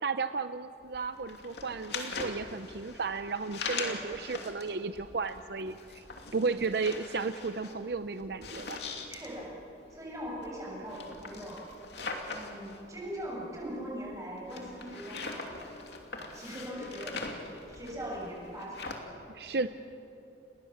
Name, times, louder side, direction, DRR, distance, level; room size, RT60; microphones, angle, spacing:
voice 1, 0.0-6.0 6.3-8.8 19.3-19.7, right 4 dB, 60° right, 10 dB, 0.6 m, -34 dB
sound 1, 0.8-19.0, left 4 dB, 70° left, 2.8 m, -42 dB
voice 2, 9.1-11.6 12.3-15.7 16.2-17.3 17.7-18.9, equal, 20° right, -3 dB, 7.3 m, -41 dB
29.5 x 21.0 x 7.3 m, 2.9 s
head